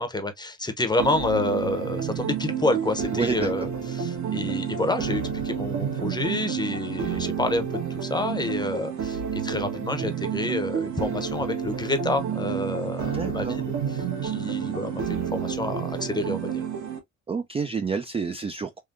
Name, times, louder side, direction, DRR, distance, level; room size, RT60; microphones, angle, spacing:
voice 1, 0.0-3.7 3.9-13.6 14.2-16.6, left 2 dB, 15° left, 0.7 m, -28 dB
sound 1, 1.0-17.0, right 7 dB, 70° right, 1.4 m, -30 dB
voice 2, 3.1-3.7 13.1-13.6 17.3-18.8, right 5 dB, 20° right, 0.3 m, -29 dB
3.6 x 2.2 x 2.5 m
cardioid pair, 90°, 30 cm